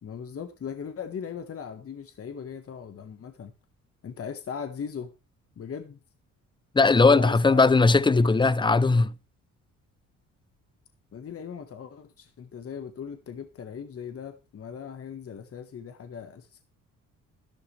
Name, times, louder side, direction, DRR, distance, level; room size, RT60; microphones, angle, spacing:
voice 1, 0.0-3.5 4.0-5.1 5.6-6.0 6.9-7.7 8.1-8.3 11.1-16.6, left 7 dB, 50° left, 1.4 m, -38 dB
voice 2, 6.7-9.1, left 3 dB, 15° left, 0.6 m, -19 dB
12.0 x 12.0 x 3.3 m
cardioid pair, 90°, 30 cm